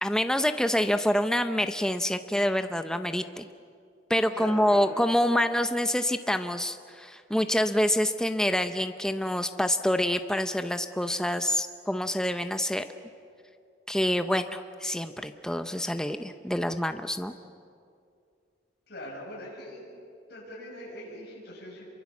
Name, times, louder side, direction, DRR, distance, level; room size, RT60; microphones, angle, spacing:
voice 1, 0.0-3.5 4.1-12.8 13.9-17.3, left 1 dB, 5° left, 8 dB, 0.7 m, -27 dB
voice 2, 4.3-5.0 18.9-19.9 20.3-21.9, left 1 dB, 60° left, -4 dB, 7.2 m, -41 dB
27.5 x 23.5 x 7.3 m, 2.3 s
head